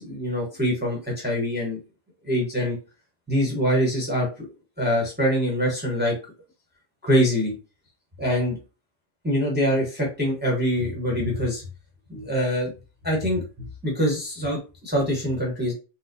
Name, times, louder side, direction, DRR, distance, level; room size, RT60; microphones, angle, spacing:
voice 1, 0.0-1.8 2.2-2.8 3.3-4.3 4.8-6.1 7.0-7.5 8.2-8.5 9.2-11.6 12.1-12.7 13.0-13.4 13.8-15.7, equal, 10° right, -2 dB, 1.0 m, -24 dB
4.3 x 2.1 x 2.7 m, 0.31 s
omnidirectional pair, 1.1 m